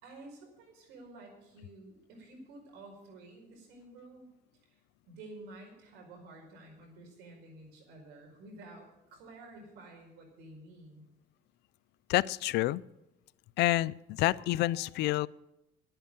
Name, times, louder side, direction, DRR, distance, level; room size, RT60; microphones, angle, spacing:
voice 1, 0.0-4.3 4.7-4.8 5.0-11.0, right 2 dB, 90° right, 2 dB, 4.9 m, -51 dB
voice 2, 12.1-12.8 13.6-15.3, left 17 dB, 80° left, 20 dB, 0.4 m, -28 dB
11.0 x 9.0 x 8.9 m, 0.89 s
cardioid pair, 110°, 17 cm